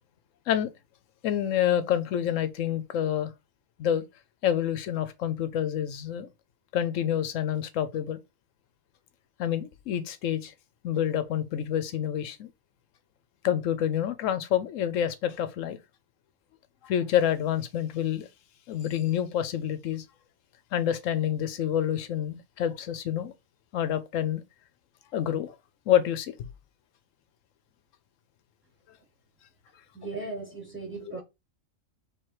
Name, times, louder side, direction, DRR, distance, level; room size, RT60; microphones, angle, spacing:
voice 1, 1.2-3.3 3.8-4.0 4.4-6.3 6.7-8.2 9.4-10.5 10.8-12.5 13.4-15.8 16.8-18.3 18.7-20.1 20.7-23.3 23.7-24.4 25.1-25.5 25.9-26.3, left 10 dB, 75° left, 1.0 m, -27 dB
voice 2, 29.9-31.2, right 3 dB, 10° right, 1.1 m, -37 dB
3.5 x 3.1 x 4.6 m
omnidirectional pair, 1.4 m